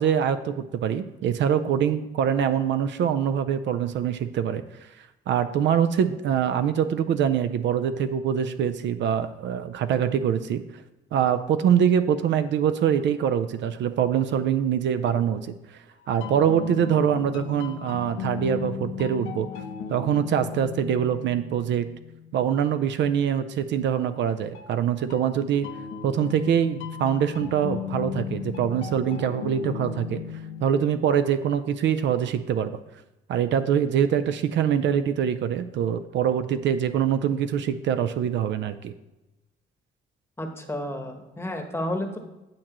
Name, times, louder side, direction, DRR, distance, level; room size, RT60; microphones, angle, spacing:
voice 1, 0.0-4.6 5.3-10.6 11.1-15.5 16.1-19.5 19.9-21.9 22.3-25.7 26.0-30.2 30.6-32.8 33.3-38.9, right 8 dB, 65° right, 11 dB, 0.5 m, -24 dB
sound 1, 16.0-22.7 24.5-31.1, left 8 dB, 80° left, 0.7 m, -36 dB
voice 2, 40.4-42.2, left 1 dB, 10° left, 5 dB, 1.0 m, -31 dB
8.8 x 7.3 x 3.0 m, 0.97 s
cardioid pair, 115°, 21 cm